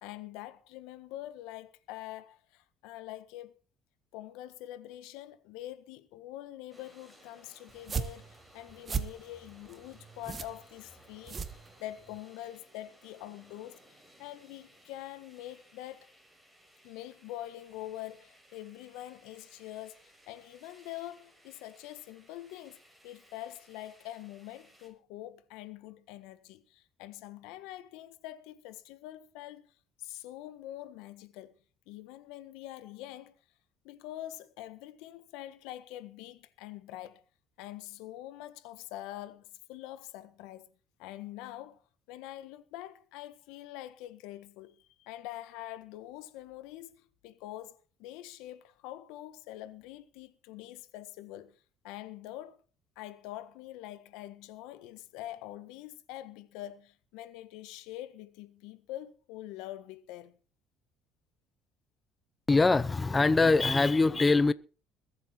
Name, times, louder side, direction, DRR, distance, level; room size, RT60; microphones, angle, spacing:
voice 1, 0.0-3.6 4.1-16.1 16.8-29.7 30.0-31.6 31.9-33.3 33.8-37.2 37.6-40.7 41.0-41.8 42.1-51.6 51.8-52.6 52.9-60.4, left 14 dB, 85° left, 1.6 m, -45 dB
sound 1, 6.7-24.9, equal, 5° right, 6.3 m, -61 dB
sound 2, 7.7-12.2, right 6 dB, 30° right, 1.5 m, -38 dB
voice 2, 62.5-64.5, left 3 dB, 20° left, 0.6 m, -23 dB
21.5 x 8.2 x 4.6 m
cardioid pair, 110°, 0 cm